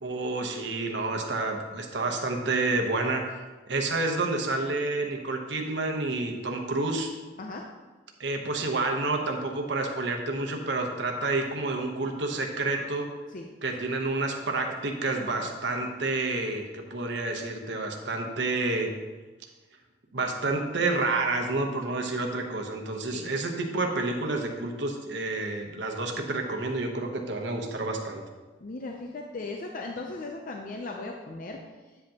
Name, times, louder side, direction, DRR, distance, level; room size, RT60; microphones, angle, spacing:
voice 1, 0.0-3.4 3.7-7.1 8.2-13.1 13.6-18.9 20.1-28.2, right 2 dB, 65° right, 2 dB, 1.0 m, -29 dB
voice 2, 28.6-31.6, left 3 dB, 45° left, 1 dB, 0.6 m, -37 dB
9.2 x 7.9 x 2.9 m, 1.3 s
head